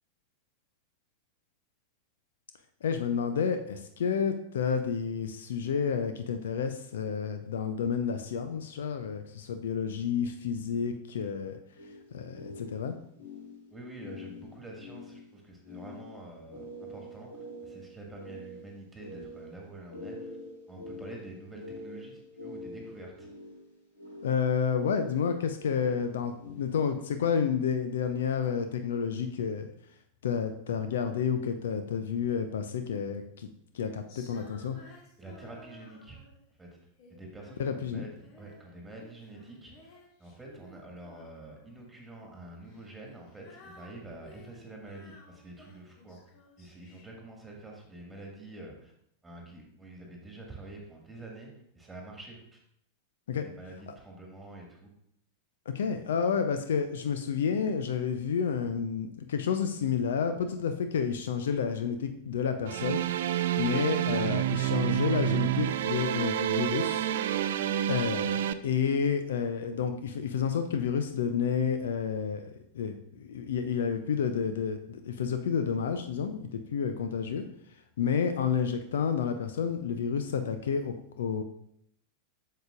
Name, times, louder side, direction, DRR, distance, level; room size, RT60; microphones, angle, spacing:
voice 1, 2.8-11.6 12.1-12.9 24.2-29.7 30.2-33.5 33.7-34.8 37.6-38.0 53.3-53.4 53.9-54.0 55.7-63.0 63.6-67.1 67.9-72.4 72.7-77.4 78.0-81.4, left 7 dB, 60° left, 8 dB, 0.5 m, -30 dB
sound 1, 11.8-27.1, left 1 dB, 80° left, 2.3 m, -46 dB
voice 2, 13.7-20.4 20.7-23.3 35.2-36.2 36.6-36.7 37.1-46.2 46.6-48.9 49.2-52.6 53.3-54.9, right 2 dB, 10° right, 0 dB, 1.9 m, -47 dB
Female singing, 34.1-36.5 37.0-38.7 39.0-41.8 42.6-47.2, left 2 dB, 45° left, 1.5 m, -55 dB
sound 2, 62.7-68.5, right 12 dB, 55° right, 0.3 m, -29 dB
7.8 x 6.6 x 2.5 m, 0.70 s
figure-of-eight pair, 90°, 0 cm